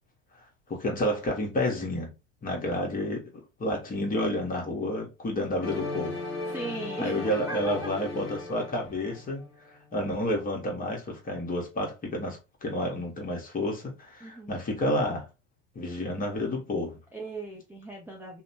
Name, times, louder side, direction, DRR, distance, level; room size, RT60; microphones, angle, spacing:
voice 1, 0.7-2.1 2.4-3.2 3.6-6.2 7.0-9.4 9.9-15.3 15.7-17.0, left 1 dB, 25° left, 1.2 m, -30 dB
sound 1, 5.6-9.5, left 2 dB, 45° left, 1.1 m, -36 dB
voice 2, 6.5-7.9 8.2-8.4 14.2-14.6 17.1-18.4, right 2 dB, 5° right, 0.5 m, -38 dB
2.7 x 2.2 x 2.8 m
figure-of-eight pair, 75°, 36 cm